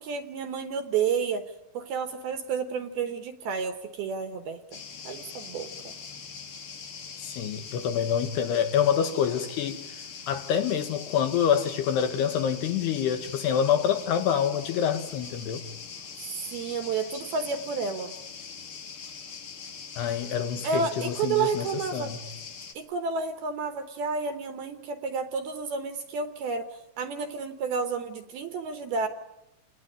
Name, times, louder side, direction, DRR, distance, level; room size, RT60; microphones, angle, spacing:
voice 1, 0.0-1.4 1.7-4.8 5.0-5.9 16.2-18.1 20.6-22.1 22.8-29.1, right 5 dB, 70° right, 2.5 m, -31 dB
sound 1, 4.7-22.7, left 6 dB, 90° left, 1.1 m, -42 dB
voice 2, 7.2-10.0 10.3-15.7 20.0-21.7 21.9-22.2, left 8 dB, 70° left, 2.8 m, -26 dB
28.5 x 19.0 x 9.9 m
omnidirectional pair, 5.6 m